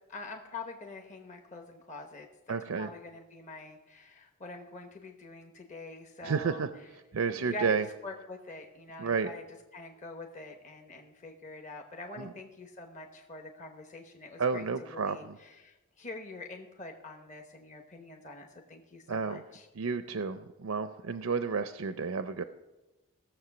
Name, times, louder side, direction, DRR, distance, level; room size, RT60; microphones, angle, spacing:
voice 1, 0.0-6.6 7.3-7.8 8.0-9.4 9.7-19.7, left 2 dB, 35° left, 3 dB, 1.0 m, -45 dB
voice 2, 2.5-2.9 6.2-6.7 7.1-7.9 9.0-9.3 12.2-12.3 14.4-15.4 19.1-19.4 19.8-22.4, right 5 dB, 80° right, 10 dB, 0.5 m, -31 dB
17.5 x 7.2 x 6.0 m, 1.1 s
head